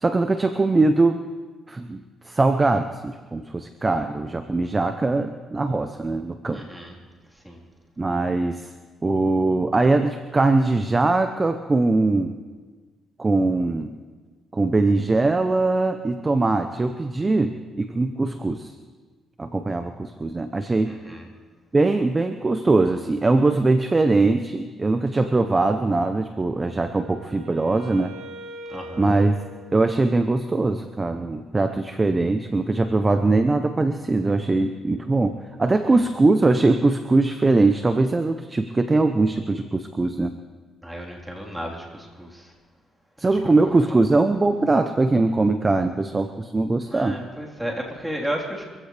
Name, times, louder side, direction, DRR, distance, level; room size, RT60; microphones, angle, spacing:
voice 1, 0.0-1.2 1.7-6.6 8.0-8.7 9.0-12.3 13.2-13.9 14.5-18.7 19.4-20.9 21.7-28.1 29.0-29.4 29.7-40.3 43.2-47.2, right 3 dB, 25° right, 8 dB, 0.8 m, -21 dB
voice 2, 6.5-6.9 7.4-7.6 20.9-21.3 28.7-29.1 40.8-42.5 43.3-43.4 43.6-43.9 46.9-48.6, equal, 5° right, -2 dB, 3.8 m, -33 dB
Wind instrument woodwind instrument, 26.6-30.5, right 1 dB, 65° right, 1.7 m, -42 dB
25.0 x 16.0 x 3.4 m, 1.4 s
cardioid pair, 90°, 0 cm